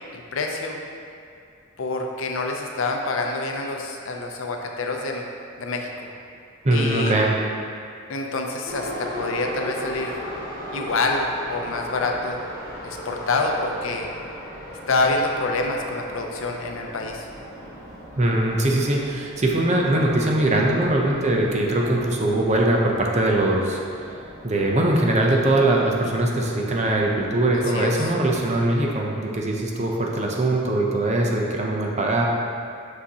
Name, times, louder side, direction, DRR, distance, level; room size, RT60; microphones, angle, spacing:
voice 1, 0.1-0.8 1.8-5.3 5.6-5.9 6.7-7.2 8.1-10.2 10.7-12.4 12.8-14.1 14.9-17.3 27.7-28.1, left 3 dB, 75° left, 2 dB, 0.6 m, -26 dB
voice 2, 6.6-7.4 18.2-23.8 24.4-32.3, right 1 dB, 35° right, -1 dB, 0.6 m, -21 dB
Subway metro underground, 8.7-28.5, equal, 20° left, 1.4 m, -38 dB
6.1 x 5.7 x 2.8 m, 2.4 s
head